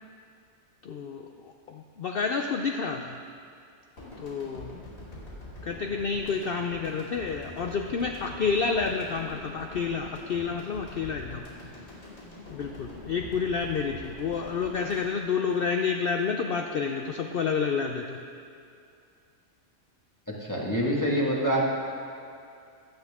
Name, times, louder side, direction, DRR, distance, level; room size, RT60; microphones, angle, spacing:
voice 1, 0.8-3.2 4.2-4.7 5.6-11.5 12.5-18.2, left 5 dB, 55° left, 3 dB, 0.7 m, -29 dB
sound 1, 4.0-16.2, left 2 dB, 90° left, 3.1 m, -44 dB
voice 2, 20.4-21.7, equal, 15° left, -4 dB, 1.6 m, -25 dB
16.0 x 10.5 x 3.6 m, 2.4 s
omnidirectional pair, 1.4 m